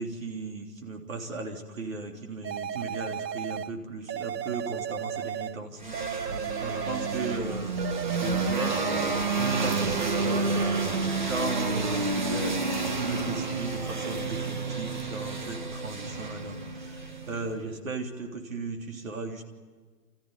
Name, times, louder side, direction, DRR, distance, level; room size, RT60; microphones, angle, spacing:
voice 1, 0.0-8.8 9.4-12.6 13.0-19.4, right 3 dB, 55° right, 2 dB, 3.5 m, -36 dB
sound 1, 2.4-3.8 4.1-5.6 5.9-7.5 7.8-9.3 9.6-10.6, right 9 dB, 90° right, 0.7 m, -34 dB
sound 2, 5.8-17.6, right 3 dB, 30° right, 1.1 m, -30 dB
28.5 x 15.0 x 9.6 m, 1.4 s
hypercardioid pair, 175°, 47 cm